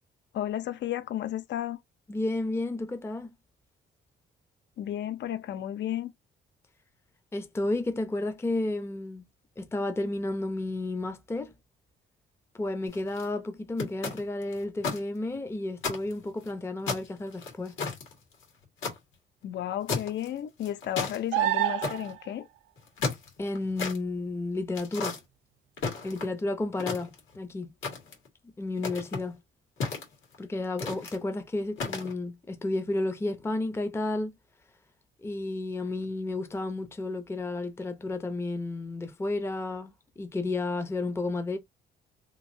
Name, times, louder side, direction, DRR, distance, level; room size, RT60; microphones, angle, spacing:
voice 1, 0.3-1.8 4.8-6.1 19.4-22.5, left 11 dB, 65° left, 0.5 m, -33 dB
voice 2, 2.1-3.3 7.3-9.3 9.6-11.5 12.5-17.8 23.4-25.2 26.0-27.7 28.6-29.4 30.4-34.4 35.2-41.6, left 2 dB, 10° left, 0.5 m, -32 dB
sound 1, 12.9-13.3 13.8-15.0 15.3-15.4 15.8-16.5 16.9-19.0 19.9-20.3 20.6-21.2 21.8-22.1 22.8-24.0 24.7-25.2 25.8-26.4 26.8-27.4 27.8-28.3 28.8-29.2 29.8-30.4 30.8-31.2 31.8-32.1, left 4 dB, 85° left, 1.7 m, -33 dB
sound 2, 21.3-22.3 25.8-25.9, right 15 dB, 90° right, 0.5 m, -27 dB
3.0 x 2.7 x 2.5 m
cardioid pair, 90°, 20 cm